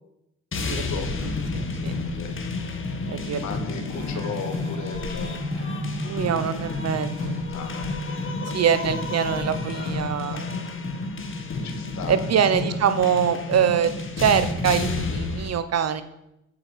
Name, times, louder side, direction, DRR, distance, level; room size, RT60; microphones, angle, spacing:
sound 1, 0.5-15.5, left 3 dB, 40° left, 1.9 m, -30 dB
voice 1, 0.6-1.4 1.8-2.4 3.4-5.7 7.5-9.3 9.7-10.7 11.6-12.3 12.7-12.8, left 6 dB, 65° left, 6 dB, 2.1 m, -38 dB
voice 2, 1.5-1.9 3.1-3.4 6.0-7.3 8.5-10.4 12.1-13.9 14.2-16.0, right 8 dB, 55° right, 12 dB, 1.2 m, -23 dB
sound 2, 3.9-11.1 11.6-11.7, right 1 dB, 80° right, 2.9 m, -38 dB
8.6 x 8.2 x 7.4 m, 0.84 s
cardioid pair, 90°, 30 cm